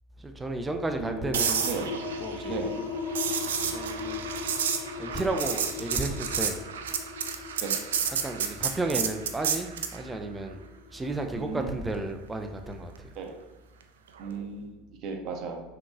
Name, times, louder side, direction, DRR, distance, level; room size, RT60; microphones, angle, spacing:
voice 1, 0.2-1.8 2.2-2.6 3.7-4.5 5.0-6.6 8.1-10.6 10.9-13.1, right 2 dB, 15° right, 5 dB, 0.5 m, -33 dB
sound 1, 0.6-11.8, left 6 dB, 55° left, 0.4 m, -39 dB
voice 2, 1.0-1.3 1.6-2.0 2.5-2.8 7.6-7.8 11.3-11.7 13.1-13.4 14.2-15.6, right 5 dB, 50° right, 3 dB, 0.8 m, -35 dB
sound 2, 1.3-10.0 14.2-14.4, right 7 dB, 75° right, 0.4 m, -31 dB
4.6 x 3.7 x 2.5 m, 1.1 s
figure-of-eight pair, 75°, 0 cm